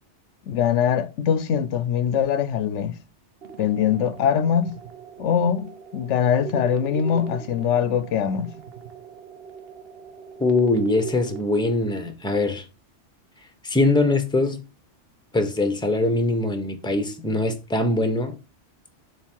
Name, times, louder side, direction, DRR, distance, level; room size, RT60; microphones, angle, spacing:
voice 1, 0.5-3.0 3.6-4.8 5.2-8.5, left 8 dB, 85° left, 1.0 m, -22 dB
sound 1, 3.4-11.4, right 6 dB, 60° right, 1.1 m, -39 dB
voice 2, 10.4-12.6 13.6-14.6 15.3-18.4, left 2 dB, 5° left, 0.9 m, -22 dB
7.2 x 3.6 x 4.5 m
omnidirectional pair, 1.2 m